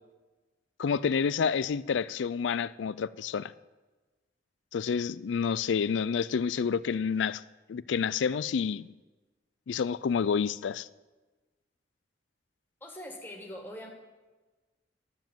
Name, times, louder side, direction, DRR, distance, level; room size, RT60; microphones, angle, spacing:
voice 1, 0.8-3.5 4.7-7.4 7.7-8.9 9.7-10.9, left 6 dB, 80° left, 0.4 m, -29 dB
voice 2, 12.8-13.9, left 1 dB, 10° left, 1.9 m, -42 dB
11.5 x 7.3 x 7.4 m
head